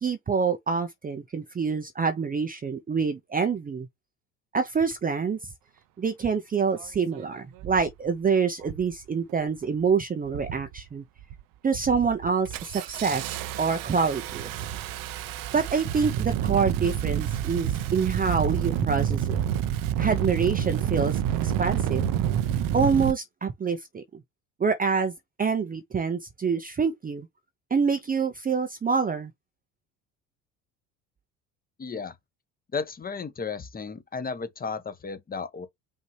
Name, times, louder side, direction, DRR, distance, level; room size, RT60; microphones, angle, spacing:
voice 1, 0.0-3.9 4.5-5.4 6.0-11.0 11.6-13.3 13.6-14.5 15.5-19.4 20.0-22.1 22.7-24.0 24.6-25.1 25.4-27.3 27.7-29.3, right 5 dB, 20° right, 0.7 m, -26 dB
Engine starting, 6.8-6.9 7.6-7.9 8.6-9.0 9.3-9.8 10.3-10.8 11.2-11.4 11.7-23.1, right 10 dB, 55° right, 0.7 m, -29 dB
voice 2, 31.8-32.1 32.7-35.7, left 5 dB, 20° left, 1.0 m, -34 dB
5.4 x 2.7 x 3.2 m
hypercardioid pair, 65°, 40 cm